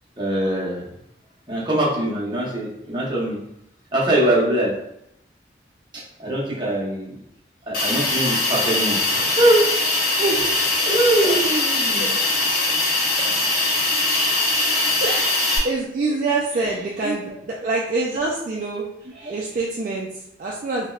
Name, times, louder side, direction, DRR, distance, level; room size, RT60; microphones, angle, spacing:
voice 1, 0.2-0.9 1.5-3.4 3.9-4.7 5.9-7.1 7.7-9.6 10.9-12.1 17.0-17.1 17.6-17.7, right 1 dB, 25° right, -5 dB, 0.7 m, -22 dB
Hiss, 7.7-15.6, left 2 dB, 50° left, 0.8 m, -21 dB
voice 2, 10.2-10.8 11.2-11.3 12.0-12.1 14.1-14.6 15.0-20.9, right 3 dB, 50° right, -3 dB, 0.3 m, -26 dB
3.3 x 2.1 x 2.3 m, 0.78 s
head